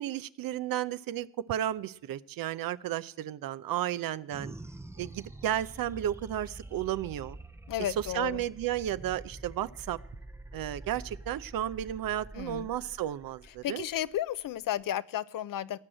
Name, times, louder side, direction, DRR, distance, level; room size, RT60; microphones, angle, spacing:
voice 1, 0.0-4.5 5.0-7.4 7.8-10.0 10.5-13.8, right 12 dB, 65° right, 15 dB, 0.7 m, -33 dB
sound 1, 4.3-15.0, right 2 dB, 5° right, 0.7 m, -47 dB
voice 2, 7.7-8.4 12.4-12.7 13.6-15.8, left 12 dB, 65° left, 17 dB, 0.7 m, -33 dB
17.0 x 6.2 x 8.8 m, 0.73 s
hypercardioid pair, 45°, 36 cm